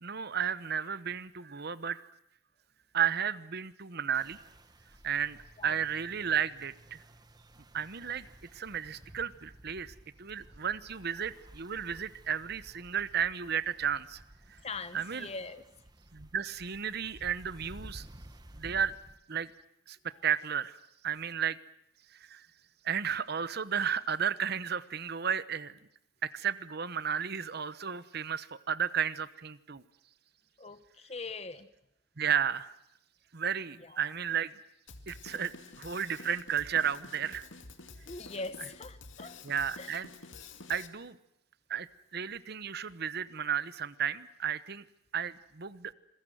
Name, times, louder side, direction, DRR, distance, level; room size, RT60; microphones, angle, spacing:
voice 1, 0.0-2.1 2.9-4.4 5.0-5.4 5.6-7.0 7.7-8.3 8.5-14.2 14.9-15.3 16.1-18.1 18.6-19.0 19.3-19.5 19.9-20.0 20.2-20.8 21.0-21.6 22.3-22.4 22.8-25.7 26.2-29.8 32.2-32.7 33.3-34.5 35.1-37.5 39.4-40.1 40.7-41.2 41.7-41.9 42.1-44.8 45.1-45.9, right 8 dB, 55° right, 15 dB, 0.9 m, -33 dB
sound 1, 4.1-19.2, right 1 dB, 20° right, 1.2 m, -54 dB
voice 2, 14.6-15.6 30.6-31.7 33.8-34.0 38.1-39.4 39.8-39.9, left 3 dB, 30° left, 12 dB, 1.0 m, -41 dB
Drum kit, 34.9-40.9, left 4 dB, 70° left, 2.4 m, -49 dB
27.0 x 21.5 x 7.8 m, 0.76 s
head